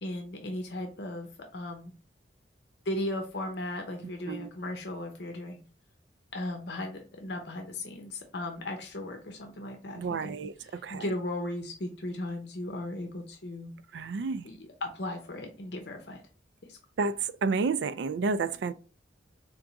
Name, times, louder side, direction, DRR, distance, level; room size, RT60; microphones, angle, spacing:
voice 1, 0.0-1.9 2.9-5.6 6.3-10.3 10.7-13.7 14.4-16.2 16.7-16.8, left 1 dB, 65° left, 0.8 m, -36 dB
voice 2, 10.0-10.5 10.8-11.1 13.9-14.5 17.0-18.7, right 4 dB, 75° right, 0.4 m, -30 dB
3.8 x 3.5 x 4.0 m
head